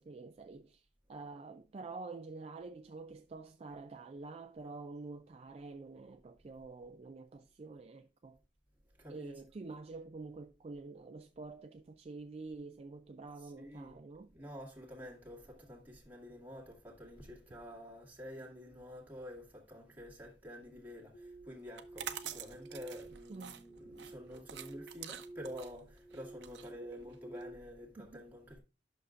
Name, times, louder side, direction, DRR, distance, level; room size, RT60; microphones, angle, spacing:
voice 1, 0.0-8.4 9.1-14.3 23.3-23.7 28.0-28.2, right 3 dB, 35° right, 0.3 m, -48 dB
voice 2, 9.0-9.3 13.3-14.0 14.3-28.6, equal, 10° right, 2.1 m, -49 dB
sound 1, 21.1-27.5, right 2 dB, 80° left, 3.1 m, -51 dB
sound 2, 21.7-27.4, right 9 dB, 70° right, 0.7 m, -47 dB
11.0 x 6.3 x 2.5 m
head